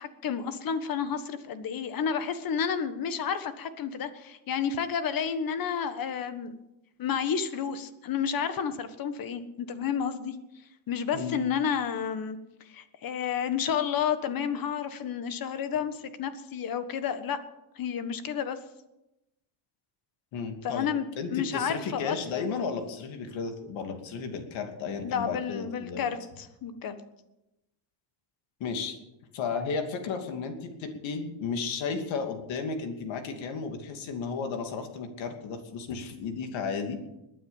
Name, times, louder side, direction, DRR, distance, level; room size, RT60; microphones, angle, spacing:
voice 1, 0.0-6.6 7.0-10.3 10.9-12.4 12.7-17.4 17.8-18.6 20.6-21.1 21.3-22.5 25.0-27.0, left 7 dB, 45° left, 11 dB, 1.5 m, -31 dB
voice 2, 20.3-20.9 21.2-26.1 28.6-29.0 29.3-37.0, left 5 dB, 65° left, 5 dB, 2.8 m, -33 dB
21.0 x 9.4 x 7.2 m, 0.94 s
cardioid pair, 155°, 49 cm